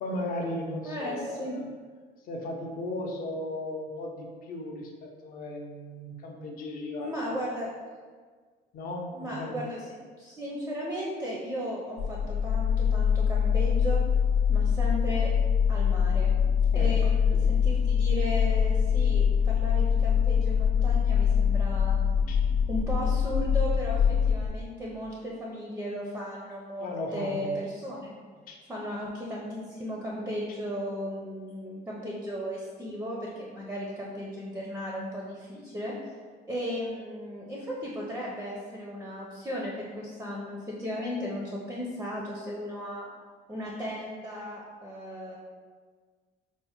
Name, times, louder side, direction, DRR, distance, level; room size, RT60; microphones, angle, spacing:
voice 1, 0.0-1.6 2.3-7.5 8.7-9.6 16.7-16.9 17.3-17.4 22.3-22.4 26.8-27.5 28.5-28.6, left 1 dB, 50° left, 1 dB, 0.6 m, -36 dB
voice 2, 0.8-1.5 7.0-7.7 9.1-9.9 10.2-14.0 14.5-15.3 15.7-16.3 16.7-22.0 22.7-28.1 28.6-36.2 36.5-43.1 43.5-45.4, equal, 10° right, -4 dB, 0.4 m, -35 dB
sound 1, 12.0-24.5, left 7 dB, 75° left, 0.8 m, -24 dB
4.3 x 2.1 x 4.2 m, 1.6 s
cardioid pair, 160°, 19 cm